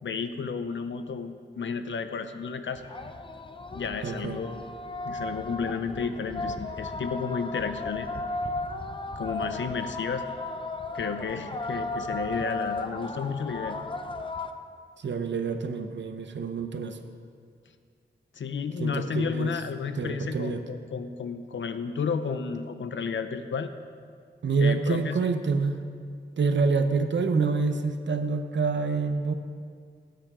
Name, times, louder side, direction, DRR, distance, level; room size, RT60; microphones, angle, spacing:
voice 1, 0.0-2.8 3.7-4.7 5.0-8.1 9.2-10.3 10.9-13.8 18.3-23.7 24.6-25.3, left 5 dB, 80° left, 9 dB, 0.7 m, -32 dB
sound 1, 2.8-14.5, left 2 dB, 25° left, 0.6 m, -35 dB
voice 2, 4.0-4.4 15.0-17.0 18.8-19.6 20.0-20.6 24.4-25.8 26.4-29.3, right 4 dB, 75° right, 7 dB, 0.9 m, -27 dB
18.0 x 9.2 x 3.8 m, 2.1 s
wide cardioid pair, 120°, 19 cm